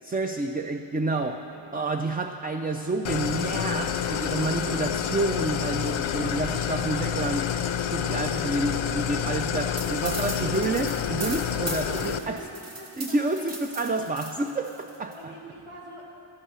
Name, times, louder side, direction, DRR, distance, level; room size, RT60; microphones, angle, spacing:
voice 1, 0.1-1.5 1.7-7.5 7.9-12.4 13.0-15.2, right 2 dB, 20° right, 5 dB, 0.3 m, -29 dB
Idling, 3.0-12.2, left 9 dB, 70° left, 0.6 m, -28 dB
sound 1, 9.8-15.1, right 1 dB, 55° right, 2.2 m, -38 dB
voice 2, 10.0-10.5 11.5-13.5 15.1-16.0, right 1 dB, 85° right, -5 dB, 2.4 m, -45 dB
14.5 x 5.5 x 7.0 m, 3.0 s
cardioid pair, 60°, 49 cm